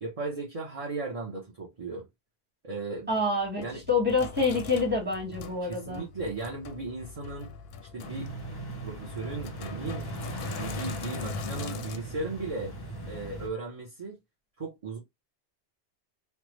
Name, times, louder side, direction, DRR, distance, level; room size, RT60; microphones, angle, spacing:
voice 1, 0.0-2.1 2.6-3.2 3.6-3.8 5.6-7.5 7.9-8.3 8.8-10.1 10.6-12.7 13.0-14.2 14.6-15.0, right 3 dB, 35° right, 0.8 m, -36 dB
Sink (filling or washing), 3.1-12.0, left 5 dB, 65° left, 0.7 m, -41 dB
voice 2, 3.1-6.0, left 3 dB, 10° right, 1.4 m, -27 dB
sound 1, 8.0-13.5, right 1 dB, 25° left, 0.6 m, -39 dB
3.3 x 2.1 x 3.0 m
omnidirectional pair, 1.2 m